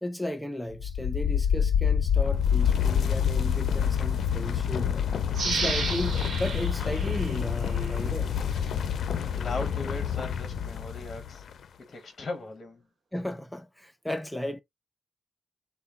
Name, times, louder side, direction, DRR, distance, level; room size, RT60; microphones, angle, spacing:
voice 1, 0.0-5.1 5.4-8.3 13.1-14.6, left 1 dB, 5° left, 0.5 m, -35 dB
sound 1, 0.7-11.5, left 8 dB, 75° left, 0.4 m, -27 dB
sound 2, 5.3-8.0 8.5-8.6, right 4 dB, 70° right, 1.1 m, -33 dB
voice 2, 9.3-11.4 11.9-12.8, left 2 dB, 35° left, 0.9 m, -38 dB
4.1 x 2.2 x 3.5 m
wide cardioid pair, 135°, 0 cm